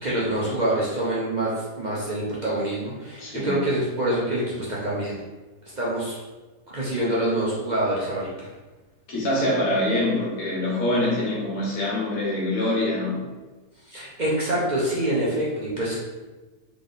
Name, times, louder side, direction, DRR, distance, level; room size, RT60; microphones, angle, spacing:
voice 1, 0.0-5.2 5.8-6.2 6.7-8.5 13.9-16.1, right 1 dB, 35° right, -7 dB, 0.9 m, -26 dB
voice 2, 3.2-3.5 9.1-13.2, left 1 dB, 75° left, -5 dB, 1.8 m, -24 dB
3.7 x 3.5 x 3.9 m, 1.2 s
omnidirectional pair, 1.5 m